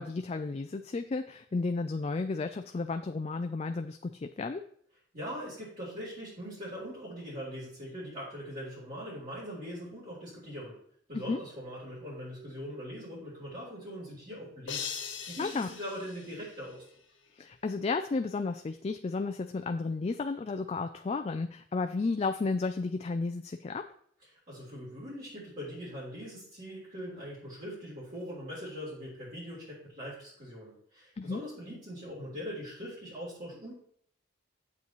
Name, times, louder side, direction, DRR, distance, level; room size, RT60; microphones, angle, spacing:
voice 1, 0.0-4.6 11.1-11.4 15.4-15.7 17.4-23.8 31.2-31.4, left 3 dB, 35° left, 7 dB, 0.4 m, -33 dB
voice 2, 5.1-10.8 11.1-14.8 15.3-16.8 24.5-33.7, equal, 45° right, -8 dB, 3.4 m, -41 dB
sound 1, 14.7-17.0, left 7 dB, 70° left, 1.4 m, -41 dB
9.7 x 8.3 x 3.1 m, 0.62 s
head